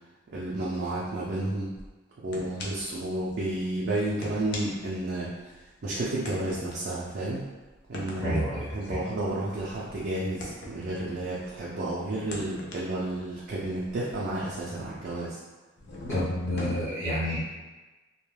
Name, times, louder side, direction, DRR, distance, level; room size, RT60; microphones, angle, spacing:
voice 1, 0.3-1.7 2.2-5.5 5.8-7.4 7.9-8.4 8.7-15.4, right 1 dB, 50° right, -6 dB, 0.4 m, -31 dB
sound 1, 1.8-1.9 2.3-3.0 3.3-3.4 4.0-5.6 6.3-11.7 12.1-15.2 15.8-16.8, left 2 dB, 55° left, 0.4 m, -41 dB
voice 2, 8.2-9.0 16.1-17.4, equal, 15° left, -13 dB, 0.7 m, -29 dB
2.2 x 2.1 x 3.1 m, 1.2 s
head